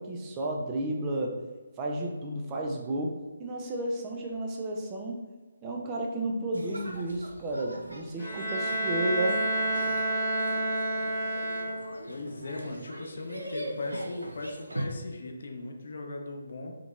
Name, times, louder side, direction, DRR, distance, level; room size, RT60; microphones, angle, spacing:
voice 1, 0.0-1.3 1.8-5.2 5.6-9.4, right 1 dB, 20° right, 0 dB, 0.4 m, -32 dB
sound 1, 6.5-14.9, right 1 dB, 80° right, 0.6 m, -41 dB
Bowed string instrument, 8.2-12.1, right 2 dB, 10° left, 0.7 m, -29 dB
voice 2, 12.1-16.7, left 2 dB, 55° left, 3 dB, 0.5 m, -38 dB
3.6 x 2.9 x 2.3 m, 1.3 s
figure-of-eight pair, 145°, 0 cm